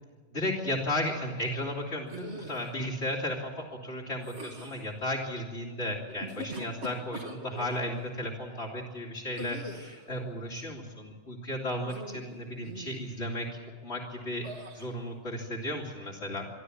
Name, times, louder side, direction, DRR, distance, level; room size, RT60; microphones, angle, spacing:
voice 1, 0.3-14.5 14.7-16.5, left 1 dB, 65° left, -1 dB, 3.1 m, -34 dB
sound 1, 2.1-2.7 4.2-4.9 6.1-7.8 9.4-10.1 11.8-12.3 12.7-13.0 14.4-14.9, right 1 dB, 65° right, 2.5 m, -42 dB
25.5 x 12.5 x 9.8 m, 1.4 s
omnidirectional pair, 1.2 m